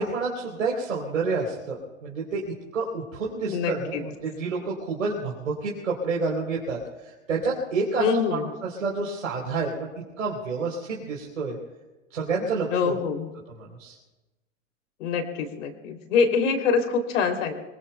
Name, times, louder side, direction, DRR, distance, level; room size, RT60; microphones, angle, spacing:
voice 1, 0.0-2.4 2.7-8.0 8.3-9.9 10.2-11.6 12.1-13.0 13.5-14.0, right 4 dB, 80° right, -2 dB, 3.9 m, -29 dB
voice 2, 3.5-4.0 8.0-8.4 12.7-13.3 15.0-17.5, left 5 dB, 65° left, 4 dB, 3.3 m, -25 dB
25.5 x 24.0 x 2.3 m, 1.1 s
hypercardioid pair, 105°, 39 cm